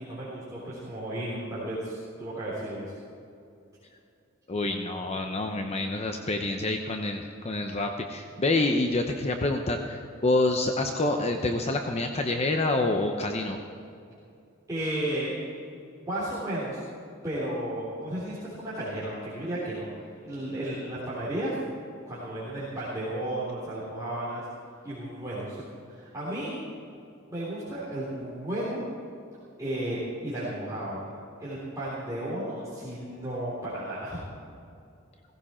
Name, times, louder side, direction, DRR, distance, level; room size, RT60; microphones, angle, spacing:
voice 1, 0.0-2.9 14.7-15.3 16.1-16.8 17.2-19.9 20.2-21.5 22.1-24.4 24.8-25.6 25.9-26.5 27.3-28.8 29.6-31.1 31.4-34.2, right 1 dB, 15° right, -9 dB, 3.5 m, -33 dB
voice 2, 4.5-13.6, left 2 dB, 30° left, 4 dB, 0.8 m, -27 dB
16.5 x 16.0 x 4.4 m, 2.5 s
head